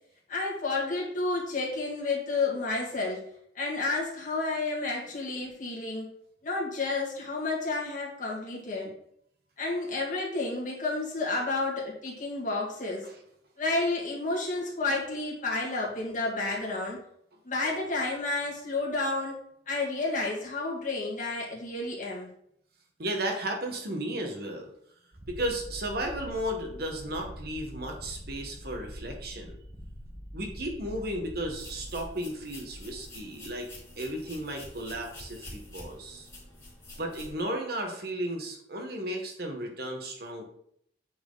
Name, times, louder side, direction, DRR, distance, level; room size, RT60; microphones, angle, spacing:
voice 1, 0.3-3.3 3.5-6.1 6.4-8.9 9.6-13.1 13.6-17.0 17.4-19.4 19.7-22.3, left 3 dB, 45° left, -3 dB, 2.2 m, -31 dB
voice 2, 23.0-24.7 25.3-29.6 30.3-33.7 34.0-36.3 37.0-40.4, right 1 dB, 60° right, 2 dB, 1.4 m, -34 dB
Purr, 25.1-32.1, equal, 30° right, 1.1 m, -44 dB
sound 1, 31.5-37.4, left 1 dB, 15° left, 2.8 m, -47 dB
8.4 x 4.7 x 4.0 m, 0.70 s
head